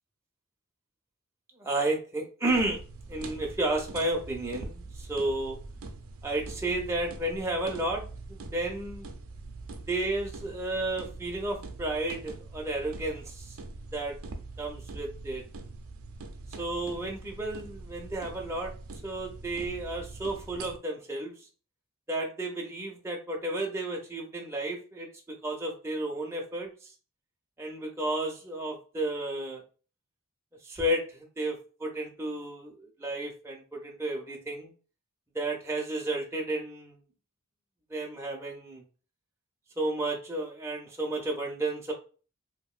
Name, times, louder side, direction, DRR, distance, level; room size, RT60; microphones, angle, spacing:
voice 1, 1.6-2.8 3.1-5.6 6.2-9.1 9.9-13.6 13.9-14.2 14.6-15.4 16.6-18.7 19.0-21.3 22.1-25.1 25.4-26.9 27.6-29.6 30.6-34.7 35.3-37.0 37.9-38.8 39.8-41.9, right 1 dB, 10° right, -1 dB, 0.5 m, -32 dB
sound 1, 2.5-20.8, right 3 dB, 70° right, 0.5 m, -43 dB
2.8 x 2.6 x 2.3 m, 0.37 s
head